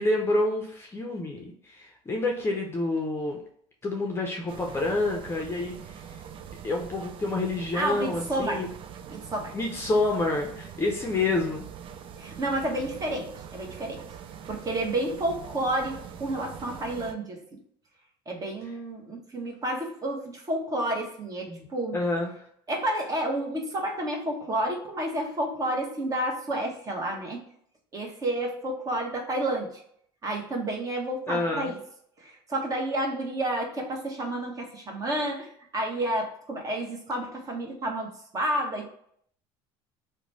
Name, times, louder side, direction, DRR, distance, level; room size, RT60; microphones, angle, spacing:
voice 1, 0.0-3.4 3.8-6.2 6.6-8.8 9.5-11.7 21.5-21.7 21.9-22.3 31.3-31.7, left 2 dB, 20° left, 1 dB, 0.6 m, -28 dB
sound 1, 4.5-17.1, right 8 dB, 45° right, 0.4 m, -43 dB
voice 2, 7.7-8.7 9.1-9.5 12.2-14.0 14.5-17.6 18.3-22.0 22.7-27.4 27.9-29.8 30.2-31.8 32.2-38.9, right 1 dB, 30° right, 1 dB, 1.0 m, -30 dB
3.0 x 2.2 x 4.0 m, 0.66 s
supercardioid pair, 105°, 12 cm